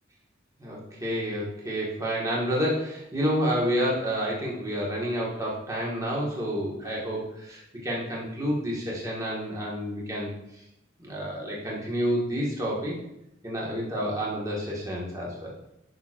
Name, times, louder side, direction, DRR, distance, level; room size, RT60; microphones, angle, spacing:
voice 1, 0.6-10.3 11.0-13.0 13.4-15.5, equal, 15° right, -4 dB, 1.6 m, -29 dB
11.0 x 5.9 x 2.5 m, 0.84 s
head